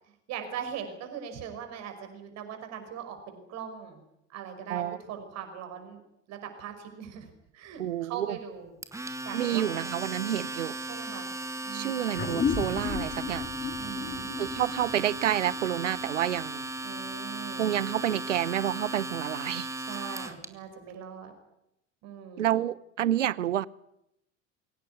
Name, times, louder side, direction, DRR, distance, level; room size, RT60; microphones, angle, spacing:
voice 1, 0.3-4.0 4.3-4.8 5.1-6.0 6.3-7.3 7.5-8.7 9.3-9.9 10.9-11.3 11.6-12.2 13.8-14.3 16.8-17.7 19.8-21.3 22.0-22.5, right 8 dB, 45° right, 5.8 m, -40 dB
voice 2, 7.8-8.4 9.3-10.8 11.7-13.5 14.4-16.7 17.6-19.7 22.4-23.7, right 11 dB, 70° right, 0.8 m, -29 dB
Domestic sounds home sounds, 8.8-20.5, right 2 dB, 10° right, 1.9 m, -36 dB
sound 1, 12.1-17.0, left 7 dB, 25° left, 2.1 m, -34 dB
23.0 x 18.0 x 9.7 m
figure-of-eight pair, 75°, 37 cm